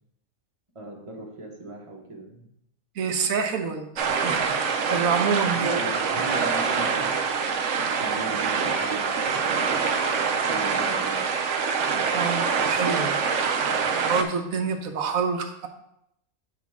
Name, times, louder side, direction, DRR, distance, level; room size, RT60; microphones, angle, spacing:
voice 1, 0.7-2.5 5.5-7.2 8.0-9.9 10.5-11.3, right 2 dB, 25° right, -1 dB, 1.2 m, -38 dB
voice 2, 3.0-4.6 4.9-5.8 12.1-13.2 13.6-13.8 14.1-15.7, right 5 dB, 85° right, 5 dB, 1.2 m, -27 dB
sound 1, 4.0-14.2, right 5 dB, 65° right, 1.0 m, -25 dB
8.0 x 6.0 x 3.6 m, 0.80 s
omnidirectional pair, 1.4 m